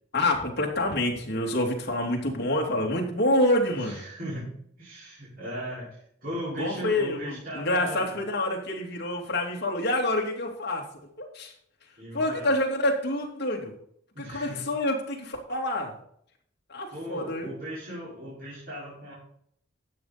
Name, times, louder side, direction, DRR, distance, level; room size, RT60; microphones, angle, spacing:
voice 1, 0.1-4.0 6.6-10.9 11.2-11.5 12.1-13.7 14.2-15.9 16.7-17.5, left 1 dB, 55° left, 0 dB, 2.8 m, -27 dB
voice 2, 3.7-4.5 4.8-8.1 12.0-12.5 14.1-14.6 16.9-19.1, equal, 50° right, -8 dB, 5.4 m, -37 dB
12.5 x 8.2 x 4.3 m, 0.67 s
head